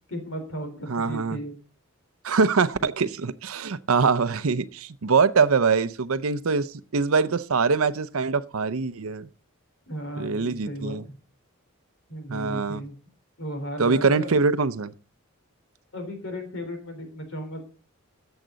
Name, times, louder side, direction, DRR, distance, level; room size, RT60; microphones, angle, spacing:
voice 1, 0.1-1.5 9.9-11.2 12.1-13.0 13.4-14.3 15.9-17.6, equal, 65° left, 3.8 m, -35 dB
voice 2, 0.9-1.4 2.2-9.3 10.2-11.0 12.3-12.8 13.8-14.9, right 4 dB, 85° right, 0.7 m, -23 dB
14.0 x 8.0 x 4.0 m
head